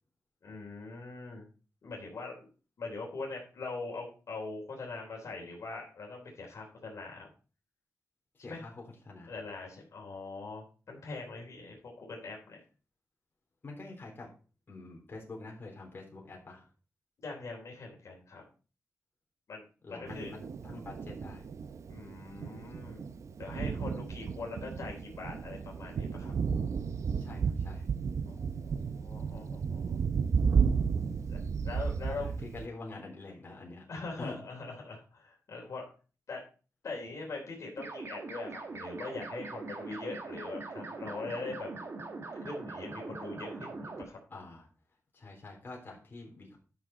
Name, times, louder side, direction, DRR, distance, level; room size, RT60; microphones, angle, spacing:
voice 1, 0.4-1.5 1.8-2.5 2.8-7.3 8.4-8.6 9.3-12.6 17.2-18.4 19.5-19.6 19.9-20.3 21.9-23.0 23.4-26.3 28.3-30.0 31.3-32.3 33.9-35.9 36.3-36.4 36.8-41.7 42.4-44.2, left 3 dB, 65° left, -1 dB, 3.3 m, -42 dB
voice 2, 8.3-9.4 13.6-14.3 14.7-16.7 19.8-21.5 27.2-27.9 32.0-33.9 34.2-34.4 44.3-44.7 45.1-46.6, left 2 dB, 40° left, -1 dB, 3.7 m, -46 dB
Thunder, 20.1-32.7, right 6 dB, 65° right, 0.7 m, -33 dB
sound 1, 37.8-44.0, right 3 dB, 50° right, 2.0 m, -42 dB
11.0 x 6.6 x 4.4 m, 0.37 s
wide cardioid pair, 115°, 6 cm